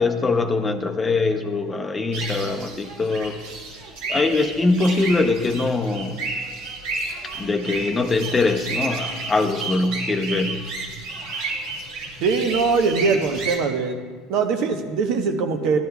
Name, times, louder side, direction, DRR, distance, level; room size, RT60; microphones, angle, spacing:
voice 1, 0.0-3.4 4.1-6.2 7.4-10.6, left 3 dB, 20° left, 5 dB, 0.7 m, -22 dB
sound 1, 2.1-13.6, right 3 dB, 90° right, 2.2 m, -31 dB
voice 2, 12.2-13.9 14.3-15.8, right 4 dB, 65° right, 5 dB, 1.0 m, -21 dB
14.0 x 11.5 x 2.3 m, 1.5 s
supercardioid pair, 120°, 0 cm